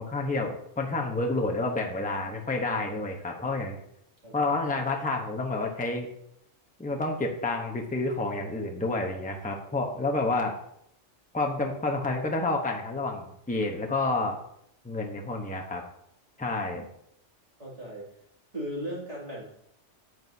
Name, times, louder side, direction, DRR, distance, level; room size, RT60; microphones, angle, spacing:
voice 1, 0.0-3.8 4.3-6.1 6.8-10.5 11.3-14.4 14.8-15.8 16.4-16.9, left 2 dB, 10° left, 1 dB, 0.9 m, -29 dB
voice 2, 4.2-4.5 17.6-18.1 18.5-19.4, equal, 30° right, -5 dB, 2.7 m, -37 dB
9.2 x 8.0 x 2.8 m, 0.73 s
omnidirectional pair, 1.2 m